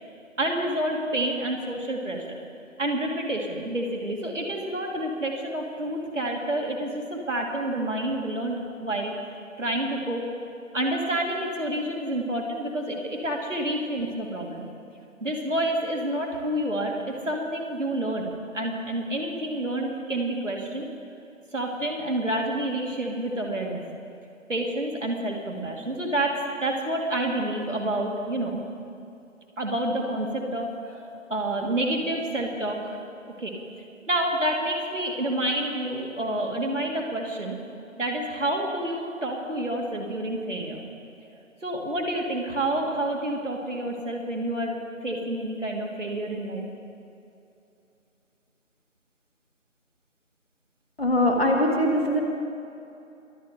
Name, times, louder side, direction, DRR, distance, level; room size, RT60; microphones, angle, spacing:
voice 1, 0.4-2.4 2.8-9.1 9.6-10.3 10.7-14.7 15.2-18.3 18.5-20.9 21.5-23.8 24.5-28.6 29.6-33.0 33.4-33.5 34.1-37.6 38.0-40.8 41.6-46.7, right 1 dB, 65° right, 0 dB, 2.3 m, -28 dB
voice 2, 51.0-52.2, left 1 dB, 50° left, 1 dB, 1.9 m, -22 dB
23.0 x 8.4 x 5.0 m, 2.6 s
figure-of-eight pair, 170°, 40 cm